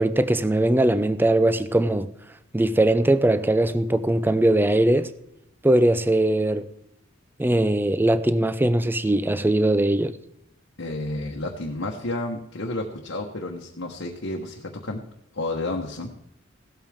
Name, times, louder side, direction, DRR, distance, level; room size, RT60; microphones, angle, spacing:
voice 1, 0.0-2.1 2.5-5.1 5.6-6.6 7.4-10.1, right 1 dB, 10° right, 0.5 m, -20 dB
voice 2, 10.8-15.0 15.3-16.1, left 2 dB, 70° left, 1.2 m, -31 dB
16.5 x 12.5 x 3.6 m
head